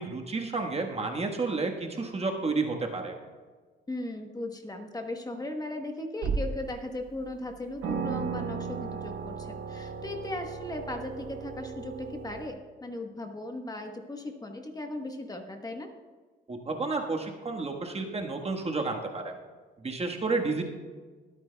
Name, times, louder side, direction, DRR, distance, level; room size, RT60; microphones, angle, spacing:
voice 1, 0.0-3.1 16.5-19.3 19.8-20.7, right 3 dB, 30° right, 2 dB, 1.4 m, -31 dB
voice 2, 3.9-15.9, left 1 dB, 20° left, 4 dB, 1.1 m, -37 dB
sound 1, 6.2-6.7 7.3-7.4 7.8-12.5, right 5 dB, 85° right, 1.1 m, -35 dB
21.5 x 9.0 x 2.3 m, 1.4 s
cardioid pair, 90°, 20 cm